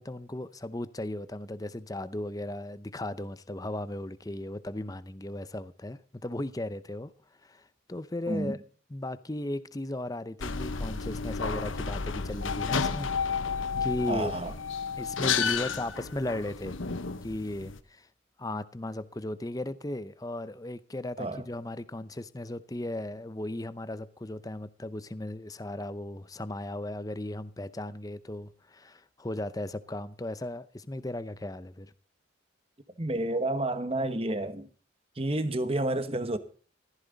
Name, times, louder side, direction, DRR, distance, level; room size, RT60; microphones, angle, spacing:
voice 1, 0.0-7.1 7.4-8.6 8.9-13.1 13.8-14.3 15.0-16.8 17.2-18.1 18.4-31.9, left 1 dB, 20° left, 0.6 m, -36 dB
voice 2, 8.3-8.6 14.1-14.5 21.2-21.4 33.0-34.7 35.2-36.4, right 1 dB, 30° right, 1.1 m, -30 dB
sound 1, 10.4-17.8, left 5 dB, 85° left, 1.0 m, -32 dB
15.0 x 14.0 x 4.0 m
head